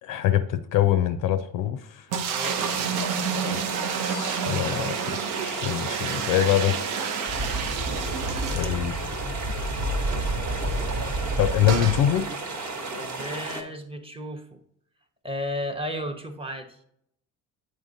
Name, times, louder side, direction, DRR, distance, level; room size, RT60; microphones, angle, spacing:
voice 1, 0.0-2.1 3.5-3.6 4.0-5.0 5.4-6.8 8.5-8.9 11.4-12.3, left 11 dB, 50° left, 12 dB, 0.5 m, -24 dB
sound 1, 2.1-9.3 9.6-9.7 9.9-10.0 11.7-12.0, right 7 dB, 75° right, 0.7 m, -30 dB
voice 2, 2.2-2.7 8.3-8.8 13.0-14.6 15.2-16.8, equal, 15° right, 6 dB, 0.7 m, -34 dB
sound 2, 2.4-13.6, right 3 dB, 40° right, 1.1 m, -34 dB
sound 3, 7.3-12.3, right 1 dB, 60° right, 1.2 m, -30 dB
8.1 x 4.4 x 2.6 m, 0.72 s
hypercardioid pair, 60°, 43 cm